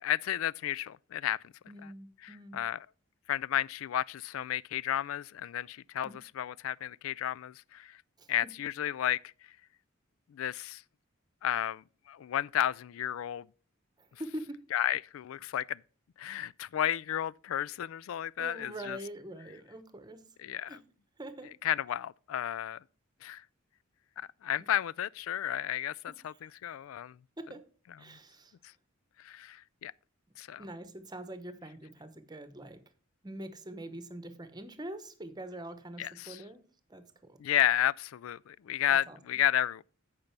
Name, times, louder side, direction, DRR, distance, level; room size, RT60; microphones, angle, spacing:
voice 1, 0.0-1.5 1.8-1.9 2.2-2.9 3.3-6.1 6.4-8.0 8.3-9.2 10.3-10.8 11.4-13.4 14.7-15.8 16.2-19.0 20.4-20.8 21.6-22.8 23.2-23.4 24.2-27.2 28.1-28.2 29.2-29.9 30.4-30.6 36.0-36.4 37.4-39.8, left 11 dB, 80° left, 0.3 m, -32 dB
voice 2, 1.7-2.6 6.0-6.1 8.2-8.5 14.0-14.6 18.4-20.2 20.7-20.8 21.2-21.5 24.6-24.7 26.1-26.2 27.4-27.7 28.0-28.5 30.6-32.8 33.2-36.6 36.9-37.4 38.9-39.4, right 1 dB, 20° right, 0.9 m, -44 dB
8.8 x 5.2 x 5.9 m
head